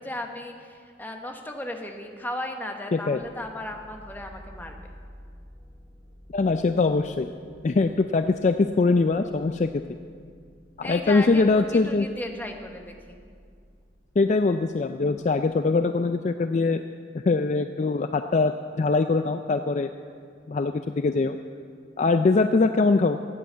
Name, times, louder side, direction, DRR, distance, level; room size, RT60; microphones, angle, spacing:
voice 1, 0.0-4.8 10.8-13.2, left 1 dB, 10° left, 3 dB, 1.0 m, -36 dB
sound 1, 3.1-15.8, equal, 30° right, 4.5 m, -51 dB
voice 2, 6.3-7.3 7.6-10.0 10.8-12.1 14.2-16.8 17.1-18.5 18.8-19.9 20.5-21.4 22.0-23.2, left 3 dB, 40° left, 8 dB, 0.3 m, -22 dB
13.0 x 8.7 x 7.9 m, 2.1 s
head